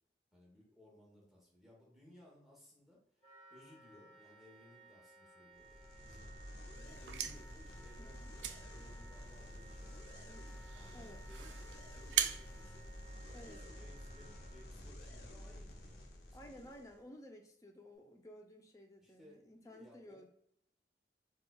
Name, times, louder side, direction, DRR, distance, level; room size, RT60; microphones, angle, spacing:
voice 1, 0.3-6.3 6.7-10.3 10.7-12.9 13.3-16.7 19.0-20.2, left 1 dB, ahead, -5 dB, 0.9 m, -62 dB
Wind instrument woodwind instrument, 3.2-14.7, right 3 dB, 30° right, 1.3 m, -60 dB
sound 1, 5.6-17.0, left 1 dB, 65° left, 0.7 m, -51 dB
sound 2, 6.8-13.6, right 10 dB, 90° right, 0.3 m, -42 dB
voice 2, 8.0-8.4 10.2-10.6 10.9-11.2 13.3-13.6 16.3-20.3, left 1 dB, 20° left, 2 dB, 0.4 m, -55 dB
4.5 x 2.3 x 2.3 m, 0.70 s
head